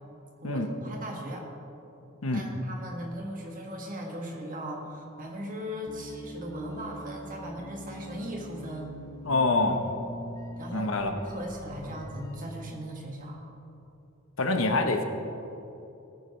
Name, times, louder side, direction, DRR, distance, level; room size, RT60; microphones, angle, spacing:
voice 1, 0.4-1.5 2.3-8.9 10.6-10.9 11.2-13.4, equal, 40° right, 0 dB, 1.9 m, -38 dB
sound 1, 5.9-12.7, equal, 15° left, 0.7 m, -43 dB
voice 2, 9.2-9.8 10.7-11.1 14.4-15.0, left 2 dB, 75° left, 5 dB, 1.1 m, -25 dB
18.5 x 9.9 x 3.3 m, 2.9 s
head